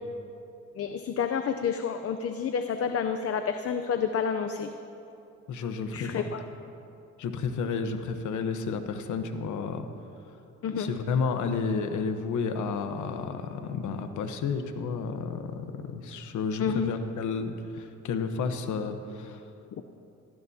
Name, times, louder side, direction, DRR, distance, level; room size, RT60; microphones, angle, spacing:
voice 1, 0.8-4.7 5.9-6.4 10.6-10.9 16.6-16.9, left 7 dB, 50° left, 7 dB, 0.7 m, -29 dB
voice 2, 5.5-6.3 7.2-9.8 10.8-19.4, left 5 dB, 75° left, 7 dB, 1.1 m, -31 dB
20.5 x 15.5 x 2.9 m, 2.7 s
cardioid pair, 90°, 30 cm